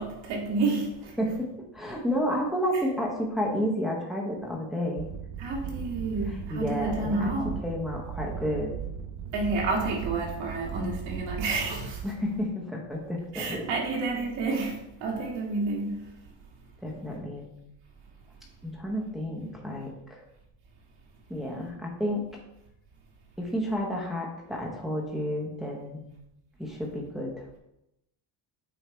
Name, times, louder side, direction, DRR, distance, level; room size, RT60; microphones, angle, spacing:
voice 1, 0.0-1.2 5.4-7.6 9.3-12.0 13.3-16.0, right 3 dB, 65° right, -2 dB, 2.1 m, -30 dB
voice 2, 1.2-5.1 6.3-7.3 7.6-8.7 12.0-13.7 16.8-17.5 18.6-20.2 21.3-22.3 23.4-26.0 26.6-27.5, equal, ahead, -2 dB, 0.8 m, -31 dB
sound 1, 5.0-12.0, right 8 dB, 85° right, 1.0 m, -37 dB
8.1 x 3.2 x 4.4 m, 0.86 s
cardioid pair, 175°, 46 cm